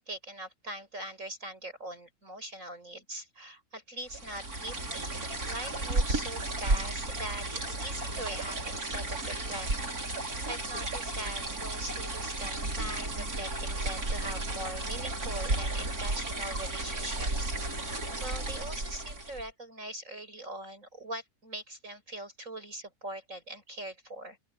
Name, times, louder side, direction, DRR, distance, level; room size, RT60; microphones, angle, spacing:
voice 1, 0.0-9.7 10.2-24.4, right 1 dB, 60° right, 8.1 m, -42 dB
sound 1, 4.1-19.5, right 2 dB, 80° right, 4.7 m, -33 dB
open air
omnidirectional pair, 1.6 m